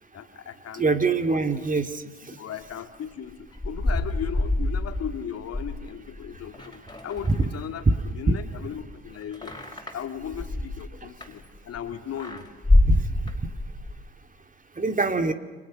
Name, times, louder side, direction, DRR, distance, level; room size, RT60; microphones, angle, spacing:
voice 1, 0.1-0.9 1.3-1.4 2.4-9.6 9.9-12.5, left 8 dB, 50° left, 8 dB, 2.5 m, -37 dB
voice 2, 0.8-1.9 7.3-7.4 8.3-8.4 12.9-13.0 14.8-15.3, right 3 dB, 25° right, 7 dB, 2.7 m, -23 dB
sound 1, 3.3-7.8 8.1-11.8 12.2-14.0, left 2 dB, 15° left, 5.4 m, -26 dB
29.5 x 25.5 x 6.4 m, 1.3 s
hypercardioid pair, 50°, 31 cm